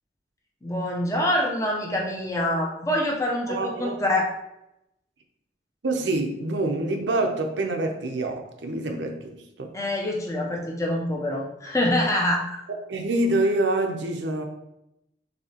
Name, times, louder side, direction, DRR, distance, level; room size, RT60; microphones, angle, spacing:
voice 1, 0.6-4.3 9.7-12.6, left 1 dB, 20° left, -1 dB, 0.7 m, -25 dB
voice 2, 3.5-4.0 5.8-9.7 12.9-14.4, right 2 dB, 90° right, 4 dB, 0.7 m, -26 dB
6.5 x 2.8 x 2.9 m, 0.84 s
head